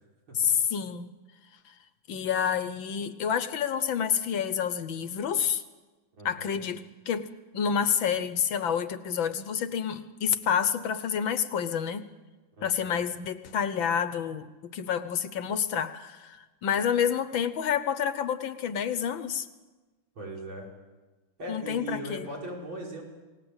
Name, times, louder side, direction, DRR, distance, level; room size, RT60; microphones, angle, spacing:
voice 1, 0.4-1.1 2.1-5.6 6.2-12.1 12.6-14.5 14.7-19.5 21.5-22.3, left 8 dB, 70° left, 12 dB, 1.6 m, -28 dB
voice 2, 6.2-6.6 12.6-13.0 20.1-20.7 21.4-23.0, right 1 dB, 65° right, -2 dB, 6.3 m, -39 dB
28.5 x 18.5 x 8.1 m, 1.2 s
omnidirectional pair, 2.4 m